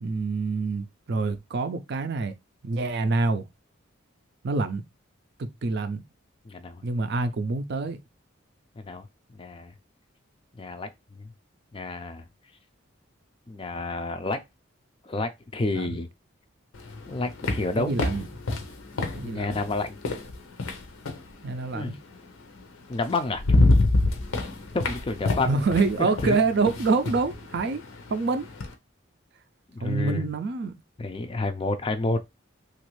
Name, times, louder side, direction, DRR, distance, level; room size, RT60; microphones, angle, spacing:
voice 1, 0.0-2.3 2.6-3.4 4.4-4.8 5.4-6.0 6.8-8.0 15.7-16.0 17.8-18.3 19.1-19.6 21.4-22.0 25.5-27.8 28.1-28.5 29.8-30.8, right 3 dB, 55° right, 0.4 m, -26 dB
voice 2, 6.5-6.8 8.8-9.7 10.6-11.3 11.7-12.2 13.5-14.4 15.0-16.1 17.1-18.0 19.0-20.0 21.7-22.0 22.9-23.4 24.7-25.7 26.0-26.4 29.7-30.2 31.0-32.2, left 2 dB, 25° left, 0.3 m, -30 dB
sound 1, 16.7-21.3 22.6-22.7 23.1-28.7, left 2 dB, 85° left, 0.7 m, -27 dB
3.0 x 2.4 x 3.0 m
head